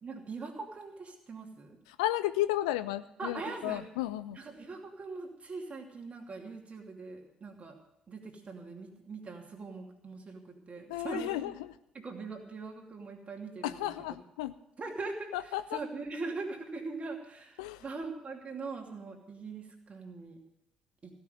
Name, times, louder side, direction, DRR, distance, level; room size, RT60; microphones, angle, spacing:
voice 1, 0.0-1.8 3.2-3.8 4.4-7.8 8.1-11.4 11.9-13.9 14.8-20.4 21.0-21.1, right 3 dB, 35° right, 2 dB, 2.7 m, -41 dB
voice 2, 1.9-4.4 10.9-11.7 13.6-14.5 15.3-15.8 17.6-17.8, left 15 dB, 70° left, 13 dB, 0.4 m, -33 dB
16.0 x 6.0 x 9.2 m, 0.82 s
figure-of-eight pair, 45°, 4 cm